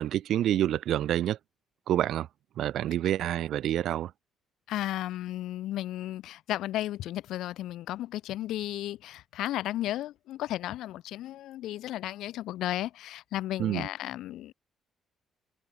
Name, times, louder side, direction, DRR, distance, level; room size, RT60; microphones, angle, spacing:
voice 1, 0.0-1.4 1.9-2.3 2.6-4.1 13.6-13.9, right 12 dB, 60° right, 1.9 m, -27 dB
voice 2, 4.7-14.5, left 14 dB, 70° left, 1.9 m, -34 dB
cardioid pair, 175°, 0 cm